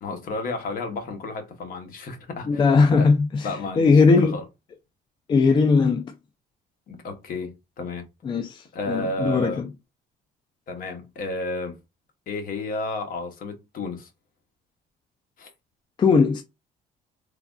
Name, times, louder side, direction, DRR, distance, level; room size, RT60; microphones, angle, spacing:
voice 1, 0.0-2.7 3.0-3.1 3.4-4.4 6.9-8.0 8.7-9.7 10.7-11.8 12.3-14.1 15.4-15.5, left 2 dB, 55° left, 0.9 m, -32 dB
voice 2, 2.5-3.5 3.8-4.4 5.3-6.1 8.2-9.7 16.0-16.4, left 4 dB, 30° left, 0.3 m, -19 dB
3.2 x 2.3 x 2.3 m
cardioid pair, 110°, 17 cm